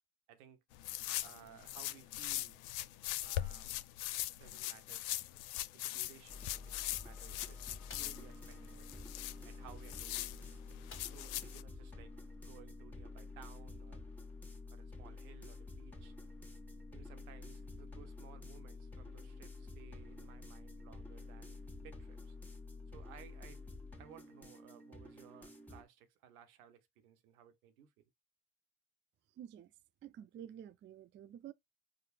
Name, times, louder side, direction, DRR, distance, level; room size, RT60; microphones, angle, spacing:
voice 1, 0.3-0.6 1.2-2.6 3.2-3.9 4.4-5.1 5.7-7.6 8.0-8.9 9.4-10.3 11.0-12.1 12.4-14.0 14.7-16.1 16.9-22.4 22.9-23.7 23.9-28.0, right 9 dB, 75° right, 0.9 m, -59 dB
sound 1, 0.7-11.6, left 15 dB, 65° left, 0.5 m, -41 dB
sound 2, 6.3-25.8, left 3 dB, 5° left, 1.4 m, -50 dB
sound 3, 7.9-8.3 10.9-11.5 11.8-11.9 12.3-12.5, left 5 dB, 30° left, 1.6 m, -55 dB
voice 2, 29.4-29.7 30.0-31.5, right 10 dB, 25° right, 0.4 m, -50 dB
4.9 x 2.1 x 4.1 m
hypercardioid pair, 55°, 44 cm